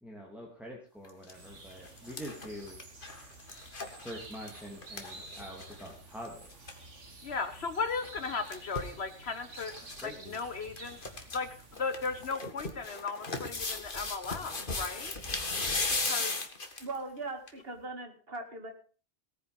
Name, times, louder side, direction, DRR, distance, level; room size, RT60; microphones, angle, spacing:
voice 1, 0.0-2.8 4.0-6.5 10.0-10.4, equal, ahead, -3 dB, 3.0 m, -45 dB
sound 1, 1.0-1.3 1.7-5.9 6.2-6.3 6.5-6.8 8.0-9.0 9.5-10.1 10.3-10.4 10.8-11.4 11.8-17.0 17.5-17.6, left 3 dB, 45° left, 2.0 m, -36 dB
sound 2, 1.3-12.3, right 2 dB, 85° right, 2.5 m, -51 dB
voice 2, 7.2-9.7 10.0-15.1 16.0-16.5, left 4 dB, 65° left, 10 dB, 1.3 m, -36 dB
voice 3, 16.8-18.7, right 3 dB, 55° right, 5 dB, 2.6 m, -39 dB
18.0 x 9.5 x 5.2 m, 0.40 s
omnidirectional pair, 1.2 m